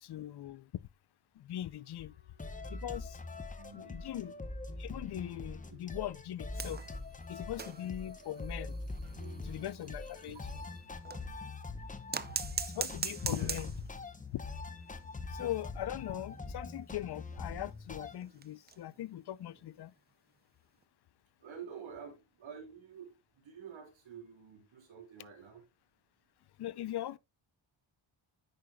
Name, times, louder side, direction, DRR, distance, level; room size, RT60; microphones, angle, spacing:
voice 1, 0.0-0.8 1.4-2.1 2.7-3.2 3.7-4.3 4.8-6.8 7.3-8.8 9.4-10.4 12.7-13.7 14.3-14.4 15.3-19.9 26.6-27.2, left 13 dB, 55° left, 0.5 m, -40 dB
Wind instrument woodwind instrument, 1.4-5.8, left 1 dB, 80° left, 3.7 m, -69 dB
sound 1, 2.4-18.2, left 3 dB, 15° left, 0.7 m, -43 dB
voice 2, 3.3-4.4 5.7-5.8 7.4-7.5 9.1-9.9 10.3-10.4 11.2-11.4 12.2-12.5 13.3-13.5 21.4-25.6, right 6 dB, 75° right, 3.8 m, -50 dB
sound 2, 6.5-11.3 12.1-14.0 14.3-14.4 14.8-14.9 15.2-15.3 15.9-19.0 19.4-19.7 20.8-20.9, right 5 dB, 20° right, 0.4 m, -42 dB
10.5 x 8.7 x 2.2 m
wide cardioid pair, 155°, 48 cm